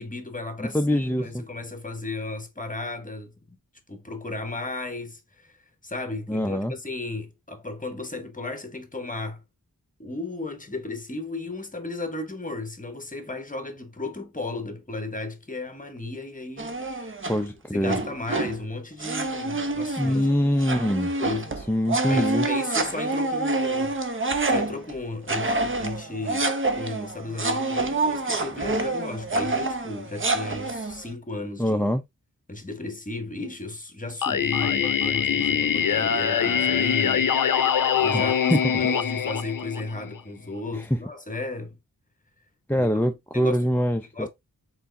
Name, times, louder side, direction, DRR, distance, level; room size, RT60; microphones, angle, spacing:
voice 1, 0.0-3.3 3.9-5.6 5.8-9.4 10.0-20.3 21.2-21.5 22.1-26.5 26.8-31.9 32.5-41.8 42.7-43.0 43.3-43.6 44.1-44.3, left 2 dB, 25° left, 1.0 m, -35 dB
voice 2, 0.6-1.4 6.3-6.7 17.3-18.0 20.0-21.1 21.7-22.5 31.6-32.0 38.1-38.2 38.5-38.6 40.8-40.9 42.7-44.3, equal, 5° left, 0.5 m, -24 dB
sound 1, 16.6-17.4 17.9-18.6 19.0-24.9 25.3-31.0, right 2 dB, 35° right, 0.7 m, -27 dB
Singing, 34.2-40.2, left 7 dB, 70° left, 0.6 m, -23 dB
4.4 x 3.9 x 2.6 m
wide cardioid pair, 80°, 34 cm